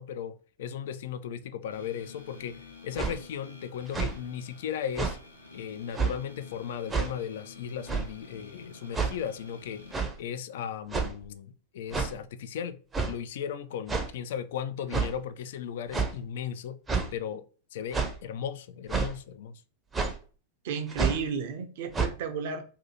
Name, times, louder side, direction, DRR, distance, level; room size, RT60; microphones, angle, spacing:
voice 1, 0.0-5.2 5.5-9.8 10.2-16.8 17.1-17.4 17.7-19.6, left 8 dB, 55° left, 0.3 m, -36 dB
sound 1, 1.7-9.9, left 4 dB, 75° left, 0.8 m, -50 dB
sound 2, 3.0-3.2 3.9-4.2 5.0-5.2 5.9-6.1 6.9-7.1 7.9-8.1 8.9-9.2 9.9-10.1 10.9-11.2 11.9-12.1 12.9-13.1 13.9-14.1 14.9-15.1 15.9-16.1 16.9-17.1 17.9-18.2 18.9-19.1 19.9-20.2 20.9-21.2 21.9-22.1, right 4 dB, 15° right, 0.6 m, -28 dB
voice 2, 20.6-22.6, right 6 dB, 50° right, 0.6 m, -32 dB
2.8 x 2.7 x 4.0 m
figure-of-eight pair, 90°, 0 cm